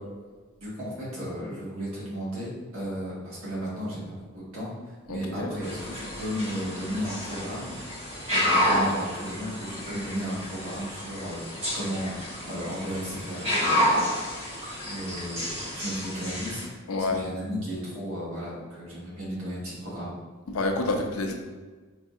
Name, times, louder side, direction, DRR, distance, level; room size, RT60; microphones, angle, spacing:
voice 1, 0.6-4.7 5.1-7.8 8.3-11.5 11.7-12.1 12.4-13.9 14.4-16.8 17.1-20.1, equal, 80° right, -7 dB, 1.5 m, -34 dB
voice 2, 5.1-5.5 16.9-17.2 20.5-21.3, left 2 dB, 85° left, 4 dB, 0.5 m, -28 dB
sound 1, 5.6-16.6, equal, 30° right, 0.9 m, -30 dB
4.6 x 2.7 x 2.4 m, 1.3 s
head